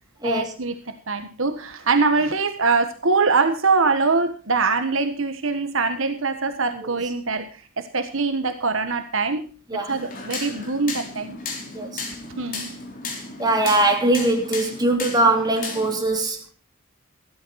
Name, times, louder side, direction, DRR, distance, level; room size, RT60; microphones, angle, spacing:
voice 1, 0.2-9.4 9.7-11.4 12.4-12.7, right 4 dB, 70° right, 1.5 m, -23 dB
sound 1, 9.9-16.0, left 3 dB, 40° left, 4.2 m, -34 dB
voice 2, 11.7-12.0 13.4-16.5, right 2 dB, 20° right, 3.3 m, -21 dB
14.5 x 13.5 x 4.2 m
head